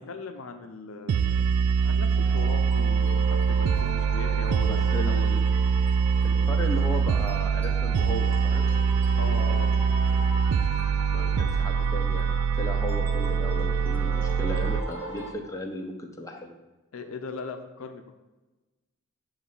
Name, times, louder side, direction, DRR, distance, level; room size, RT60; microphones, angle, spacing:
voice 1, 0.0-1.5 1.8-5.4 9.2-9.7 16.9-18.1, left 3 dB, 65° left, 6 dB, 0.6 m, -39 dB
sound 1, 1.1-14.8, right 6 dB, 85° right, 0.3 m, -24 dB
sound 2, 2.1-15.3, equal, 10° right, 0.8 m, -39 dB
voice 2, 4.6-5.4 6.2-8.7 11.1-12.3 12.6-16.5, left 1 dB, 15° left, 1 dB, 0.7 m, -36 dB
8.1 x 3.2 x 5.4 m, 1.1 s
head